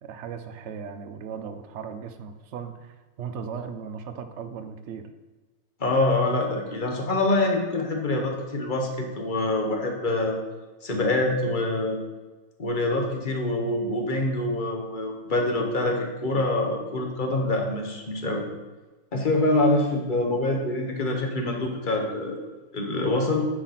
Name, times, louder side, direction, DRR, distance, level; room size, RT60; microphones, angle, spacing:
voice 1, 0.0-5.1, right 6 dB, 60° right, 8 dB, 0.8 m, -37 dB
voice 2, 5.8-10.4 10.8-12.0 12.6-18.4 19.1-22.4 22.7-23.4, left 2 dB, 35° left, 2 dB, 1.2 m, -25 dB
9.9 x 5.0 x 4.2 m, 1.2 s
omnidirectional pair, 1.6 m